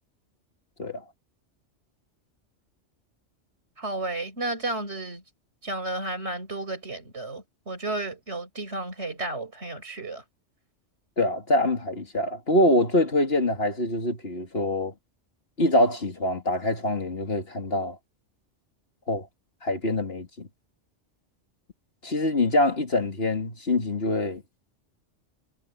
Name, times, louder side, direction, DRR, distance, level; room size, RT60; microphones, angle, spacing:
voice 1, 3.8-5.2 5.6-10.2, right 2 dB, 60° right, 6.3 m, -32 dB
voice 2, 11.2-14.9 15.6-18.0 19.1-19.3 19.6-20.5 22.0-24.4, left 1 dB, 55° left, 2.7 m, -24 dB
omnidirectional pair, 1.3 m